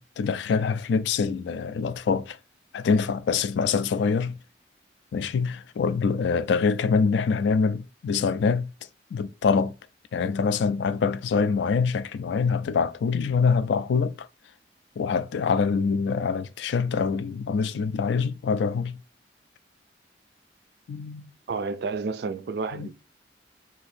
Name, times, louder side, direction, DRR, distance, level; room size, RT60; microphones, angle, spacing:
voice 1, 0.0-2.4 2.7-4.4 5.1-8.7 9.1-9.7 10.1-14.3 15.0-19.0 20.9-21.3 22.7-22.9, left 5 dB, 75° left, 0.3 m, -25 dB
voice 2, 21.5-22.9, right 4 dB, 60° right, 0.3 m, -30 dB
2.7 x 2.6 x 4.1 m
head